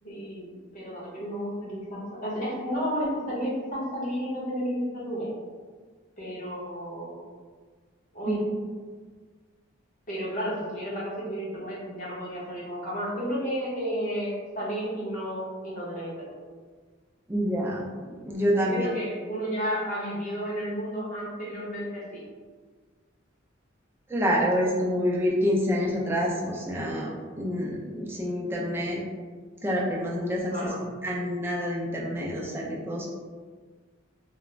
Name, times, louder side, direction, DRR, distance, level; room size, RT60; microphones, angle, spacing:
voice 1, 0.0-5.3 6.2-7.1 8.1-8.4 10.1-16.1 18.5-22.2 30.5-30.8, equal, 40° left, -7 dB, 0.8 m, -32 dB
voice 2, 17.3-18.9 24.1-29.0 29.6-30.5 30.8-33.1, equal, 10° right, -3 dB, 0.3 m, -27 dB
2.4 x 2.0 x 3.1 m, 1.5 s
head